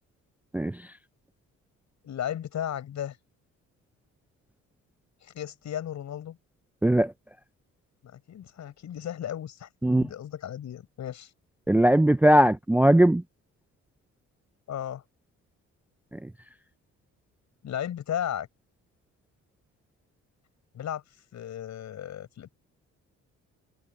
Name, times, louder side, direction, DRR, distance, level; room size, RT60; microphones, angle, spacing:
voice 1, 2.0-3.2 5.2-6.4 8.0-11.3 14.7-15.0 17.6-18.5 20.7-21.0 21.3-22.5, left 10 dB, 65° left, 7.3 m, -35 dB
voice 2, 6.8-7.1 9.8-10.1 11.7-13.2, right 1 dB, 5° right, 0.4 m, -19 dB
cardioid pair, 90°, 30 cm